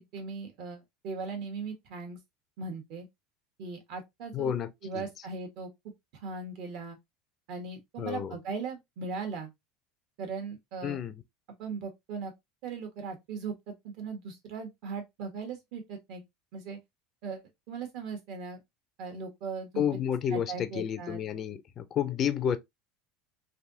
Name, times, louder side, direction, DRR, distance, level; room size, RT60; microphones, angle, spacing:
voice 1, 0.0-2.2 2.6-3.1 3.6-4.5 4.8-5.7 6.1-7.0 7.5-9.5 10.2-11.0 11.6-12.3 12.6-16.2 16.5-16.8 17.2-18.6 19.0-19.8 20.3-21.2, right 5 dB, 60° right, 1.3 m, -38 dB
voice 2, 4.3-5.0 8.0-8.4 10.8-11.1 19.8-22.6, left 8 dB, 30° left, 0.4 m, -30 dB
3.4 x 2.7 x 2.6 m
cardioid pair, 155°, 0 cm